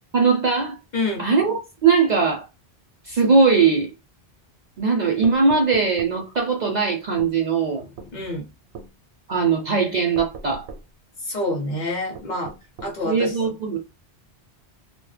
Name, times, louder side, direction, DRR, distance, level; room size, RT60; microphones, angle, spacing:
voice 1, 0.1-0.8 1.2-2.4 3.1-3.9 4.8-7.8 9.3-10.7 13.0-13.8, right 5 dB, 55° right, 0.5 m, -20 dB
voice 2, 0.9-1.2 8.0-8.5 11.2-12.5 12.8-13.4, left 2 dB, 50° left, 0.7 m, -27 dB
sound 1, 5.2-6.2 7.2-7.4 8.0-8.2 8.7-8.9 10.1-10.9 12.1-13.0, right 5 dB, 85° right, 0.9 m, -39 dB
2.2 x 2.0 x 3.2 m
omnidirectional pair, 1.1 m